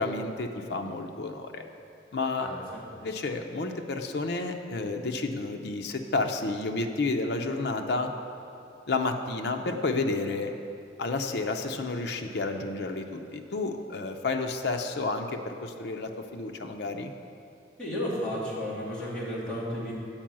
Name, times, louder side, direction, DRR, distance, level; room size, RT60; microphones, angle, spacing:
voice 1, 0.0-1.6 2.1-2.5 3.0-8.1 8.9-10.5 11.0-17.1, left 3 dB, 65° left, 4 dB, 0.6 m, -31 dB
voice 2, 2.4-2.8 17.8-19.9, equal, 5° left, -10 dB, 2.3 m, -33 dB
8.9 x 4.6 x 7.4 m, 2.6 s
head